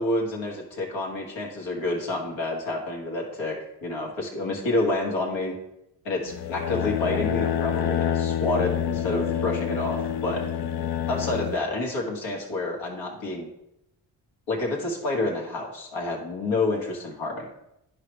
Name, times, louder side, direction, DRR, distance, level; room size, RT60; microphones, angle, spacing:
voice 1, 0.0-3.6 3.8-5.5 6.0-10.4 11.1-13.5 14.5-17.5, left 2 dB, 85° left, -1 dB, 1.9 m, -28 dB
sound 1, 6.3-11.6, left 9 dB, 65° left, 0.8 m, -27 dB
10.5 x 4.9 x 3.2 m, 0.83 s
supercardioid pair, 55°, 45 cm